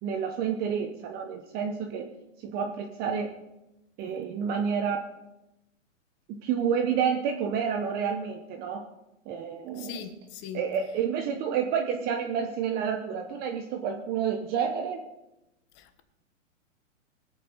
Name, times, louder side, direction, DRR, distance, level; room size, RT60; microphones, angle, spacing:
voice 1, 0.0-2.1 2.4-3.3 4.0-5.0 6.4-8.8 9.3-10.0 10.5-15.0, right 7 dB, 25° right, 0.9 m, -29 dB
voice 2, 9.8-10.6, left 9 dB, 25° left, 1.2 m, -39 dB
21.5 x 8.6 x 4.1 m
hypercardioid pair, 140°, 40 cm